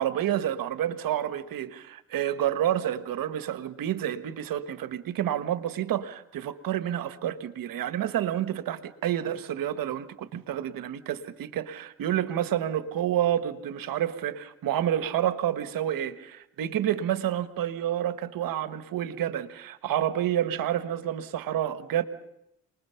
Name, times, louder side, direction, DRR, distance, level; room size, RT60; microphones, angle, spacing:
voice 1, 0.0-22.0, right 11 dB, 85° right, 11 dB, 1.3 m, -29 dB
28.0 x 20.5 x 5.8 m, 0.81 s
supercardioid pair, 55°, 33 cm